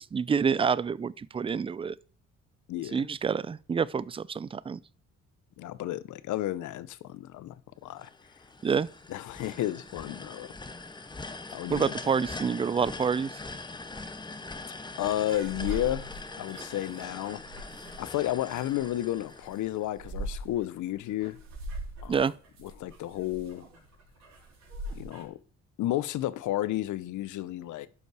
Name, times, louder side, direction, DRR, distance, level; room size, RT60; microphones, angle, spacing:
voice 1, 0.0-1.9 2.9-4.8 8.6-8.9 11.7-13.4 22.1-22.3, right 6 dB, 20° right, 0.3 m, -28 dB
voice 2, 2.7-3.1 5.6-7.5 7.8-8.1 9.1-10.5 11.0-11.1 11.5-11.9 15.0-16.1 16.4-17.4 18.0-21.4 22.0-22.3 22.6-23.6 24.9-25.4 25.8-27.9, left 14 dB, 80° left, 0.7 m, -32 dB
sound 1, 8.0-20.1, left 3 dB, 15° left, 0.8 m, -42 dB
sound 2, 15.3-25.2, equal, 65° right, 4.1 m, -41 dB
11.5 x 5.4 x 4.8 m
cardioid pair, 90°, 30 cm